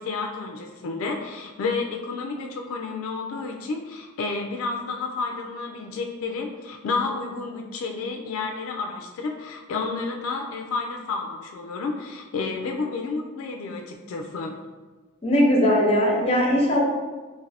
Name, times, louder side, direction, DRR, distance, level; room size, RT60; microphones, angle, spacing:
voice 1, 0.0-14.5, left 4 dB, 85° left, 2 dB, 0.3 m, -30 dB
voice 2, 15.2-16.8, equal, 30° left, -2 dB, 0.6 m, -19 dB
2.6 x 2.4 x 3.3 m, 1.3 s
head